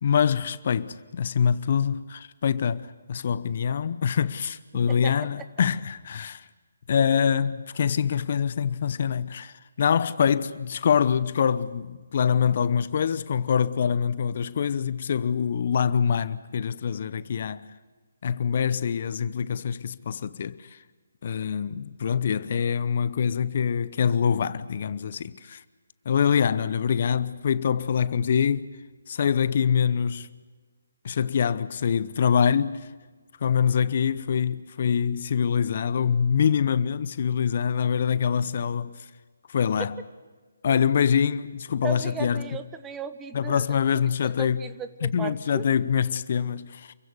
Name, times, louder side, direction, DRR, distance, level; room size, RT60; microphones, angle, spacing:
voice 1, 0.0-6.5 6.9-17.6 18.2-20.8 21.2-25.6 26.0-28.7 29.1-30.3 31.0-32.9 33.4-39.1 39.5-39.9 40.6-42.6 43.3-44.6 45.0-46.9, left 7 dB, 45° left, 0.8 m, -25 dB
voice 2, 41.8-43.6 44.4-45.6, right 5 dB, 10° right, 1.1 m, -36 dB
28.5 x 16.0 x 9.6 m
figure-of-eight pair, 145°, 0 cm